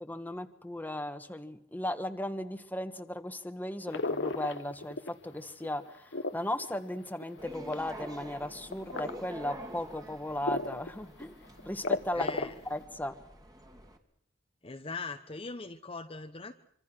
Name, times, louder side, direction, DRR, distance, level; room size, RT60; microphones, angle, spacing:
voice 1, 0.0-11.4 11.6-13.1, left 1 dB, 10° left, 9 dB, 1.5 m, -36 dB
sound 1, 3.9-5.3 5.6-7.9 8.7-9.1 9.7-9.8 10.5-10.9 11.2-11.3 11.6-12.7, left 3 dB, 65° left, 1.3 m, -33 dB
sound 2, 7.4-14.0, equal, 20° right, 2.6 m, -47 dB
voice 2, 12.1-12.5 14.6-16.5, left 3 dB, 30° left, 6 dB, 1.0 m, -40 dB
26.0 x 25.0 x 6.2 m, 0.65 s
head